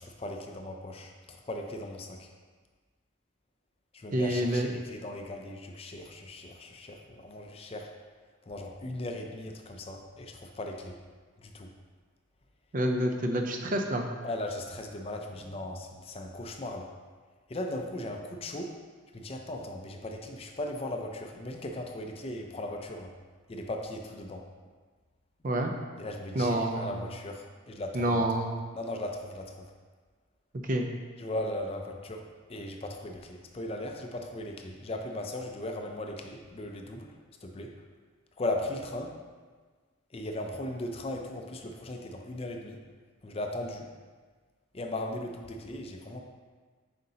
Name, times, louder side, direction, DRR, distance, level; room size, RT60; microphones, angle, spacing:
voice 1, 0.0-2.3 3.9-7.9 8.5-11.0 11.4-11.7 14.2-16.9 17.5-18.7 19.1-23.1 23.5-24.4 26.0-28.2 28.7-29.5 31.2-32.2 32.5-37.1 37.4-37.7 38.4-39.2 40.1-42.8 43.2-43.9 44.7-46.2, left 1 dB, 30° left, 3 dB, 0.4 m, -37 dB
voice 2, 4.1-4.7 12.7-14.0 25.4-25.7 26.3-26.9 27.9-28.5 30.6-30.9, right 1 dB, 40° right, 3 dB, 0.5 m, -27 dB
7.7 x 5.1 x 2.8 m, 1.5 s
head